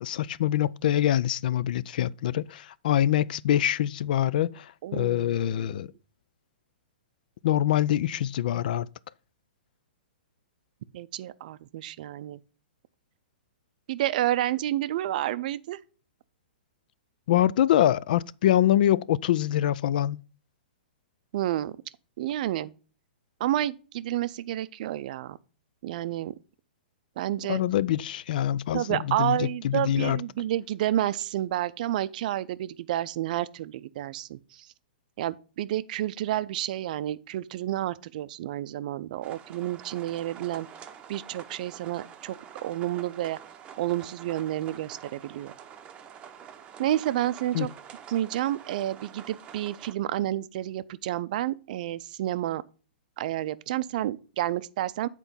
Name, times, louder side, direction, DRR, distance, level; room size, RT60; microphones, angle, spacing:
voice 1, 0.0-5.9 7.4-8.9 17.3-20.2 27.5-30.2 47.5-47.7, left 12 dB, 60° left, 0.3 m, -25 dB
voice 2, 4.8-5.8 10.9-12.4 13.9-15.8 21.3-21.8 22.2-22.7 23.4-25.4 25.8-26.3 27.2-27.6 28.7-34.7 35.2-40.7 41.1-42.4 42.6-43.4 43.8-45.5 46.8-47.7 48.1-52.6 53.2-55.1, right 13 dB, 55° right, 0.5 m, -30 dB
sound 1, 39.2-49.9, right 8 dB, 20° right, 0.7 m, -47 dB
8.0 x 4.5 x 5.5 m
hypercardioid pair, 125°, 5 cm